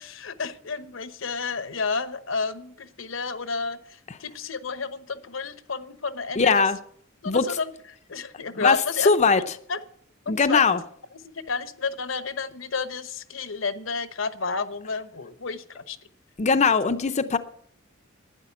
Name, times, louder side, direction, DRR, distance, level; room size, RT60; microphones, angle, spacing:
voice 1, 0.0-6.7 7.2-7.7 8.1-9.8 10.3-10.8 11.2-16.0 17.2-17.3, left 4 dB, 70° left, 13 dB, 1.0 m, -31 dB
voice 2, 6.4-6.8 7.3-7.5 8.6-9.4 10.3-10.8 16.4-17.4, left 4 dB, 35° left, 9 dB, 0.6 m, -20 dB
12.0 x 9.7 x 8.3 m, 0.66 s
head